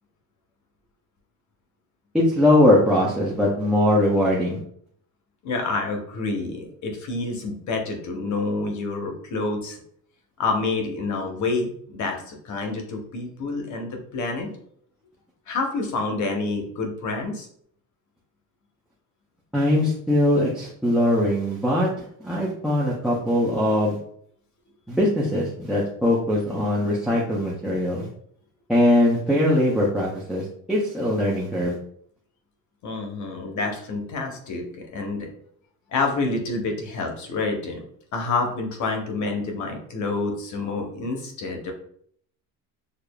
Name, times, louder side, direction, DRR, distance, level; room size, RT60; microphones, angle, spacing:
voice 1, 2.1-4.6 19.5-24.0 24.9-28.1 28.7-31.8, left 1 dB, 5° right, -5 dB, 0.4 m, -21 dB
voice 2, 5.4-9.8 10.4-14.5 15.5-17.5 32.8-35.3 35.9-37.8 38.1-41.7, left 3 dB, 45° left, 2 dB, 0.9 m, -28 dB
6.6 x 2.3 x 2.2 m, 0.64 s
cardioid pair, 170°, 40 cm